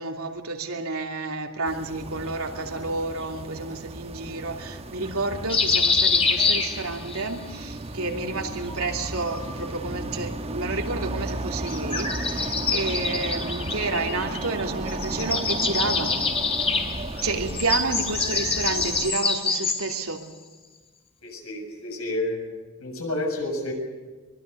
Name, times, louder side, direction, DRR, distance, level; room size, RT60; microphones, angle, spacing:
voice 1, 0.0-16.2 17.2-20.2, right 3 dB, 85° right, 3 dB, 2.9 m, -30 dB
sound 1, 1.6-19.1, right 2 dB, 30° right, 1.1 m, -34 dB
sound 2, 5.5-7.2 8.6-9.7 11.6-14.6 14.9-20.1, left 4 dB, 30° left, 3.2 m, -26 dB
voice 2, 21.2-22.5 22.8-23.7, left 1 dB, 80° left, 2 dB, 7.5 m, -30 dB
24.0 x 22.5 x 6.9 m, 1.3 s
head